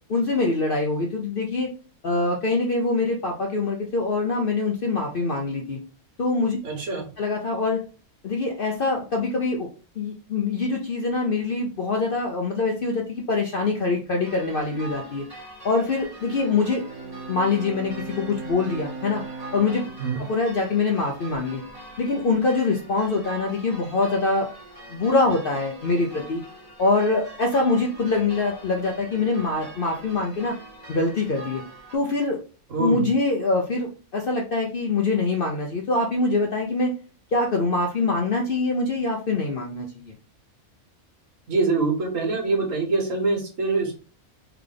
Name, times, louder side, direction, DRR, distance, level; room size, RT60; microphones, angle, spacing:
voice 1, 0.1-1.7 2.0-5.8 6.2-6.6 7.2-7.8 8.2-9.7 10.0-15.2 15.6-16.8 17.3-19.2 19.5-19.8 20.2-21.6 22.0-24.5 24.9-26.4 26.8-30.5 30.9-31.6 31.9-32.4 32.8-36.9 37.3-40.1, left 3 dB, 55° left, 1 dB, 0.6 m, -24 dB
voice 2, 6.6-7.1 20.0-20.2 32.7-33.1 41.5-43.9, right 3 dB, 65° right, 0 dB, 1.5 m, -24 dB
sound 1, 14.2-32.0, right 1 dB, 25° right, 1.5 m, -43 dB
Bowed string instrument, 16.1-21.6, right 3 dB, 90° right, 1.4 m, -39 dB
3.4 x 3.4 x 3.7 m, 0.37 s
omnidirectional pair, 1.5 m